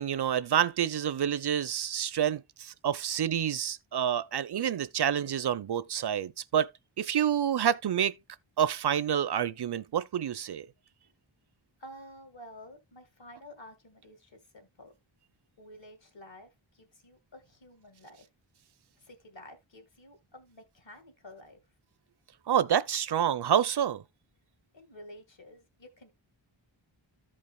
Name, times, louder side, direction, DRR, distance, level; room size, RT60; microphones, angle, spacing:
voice 1, 0.0-6.7 7.0-8.1 8.6-10.7 22.5-24.0, right 9 dB, 55° right, 0.6 m, -28 dB
voice 2, 11.8-14.9 15.6-18.3 19.0-21.6 24.7-26.1, left 1 dB, 65° left, 1.8 m, -51 dB
14.0 x 5.3 x 2.2 m
wide cardioid pair, 65°, 48 cm